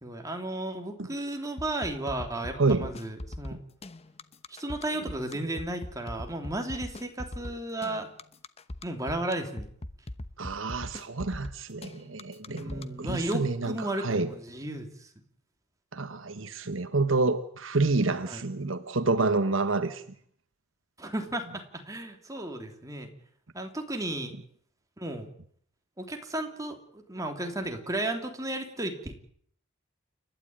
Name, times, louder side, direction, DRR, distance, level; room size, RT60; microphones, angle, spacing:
voice 1, 0.0-3.6 4.5-8.1 8.8-9.7 12.5-15.1 18.3-18.4 21.0-23.1 23.5-24.3 25.0-25.3 26.0-29.2, right 1 dB, 15° right, 3 dB, 3.2 m, -34 dB
sound 1, 1.6-13.3, left 1 dB, 30° left, 0.9 m, -40 dB
voice 2, 2.6-2.9 3.5-3.6 10.4-14.3 15.9-20.0, right 3 dB, 70° right, 10 dB, 1.2 m, -28 dB
29.5 x 12.5 x 8.9 m, 0.63 s
head